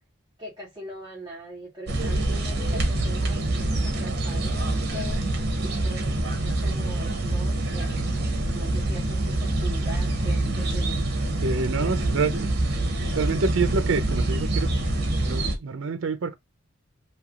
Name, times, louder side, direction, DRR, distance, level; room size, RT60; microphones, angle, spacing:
voice 1, 0.4-5.2 5.6-8.0 8.5-11.1 11.8-11.9, equal, 20° right, 0.9 m, -41 dB
sound 1, 1.9-15.6, right 2 dB, 50° right, 0.8 m, -26 dB
voice 2, 11.4-12.5 13.1-14.7 15.2-16.4, right 4 dB, 65° right, 0.5 m, -27 dB
3.3 x 2.8 x 2.3 m
head